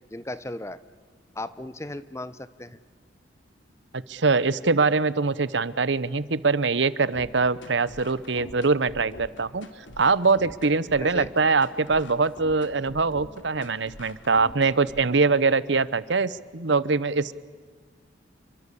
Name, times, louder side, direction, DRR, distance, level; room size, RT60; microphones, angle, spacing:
voice 1, 0.1-0.8 1.3-2.8 11.0-11.3, left 1 dB, 15° left, 15 dB, 0.9 m, -36 dB
voice 2, 4.1-9.7 10.0-17.3, right 4 dB, 70° right, 18 dB, 0.9 m, -23 dB
sound 1, 7.1-15.1, left 1 dB, 75° left, 2.7 m, -44 dB
29.0 x 23.0 x 8.4 m, 1.5 s
head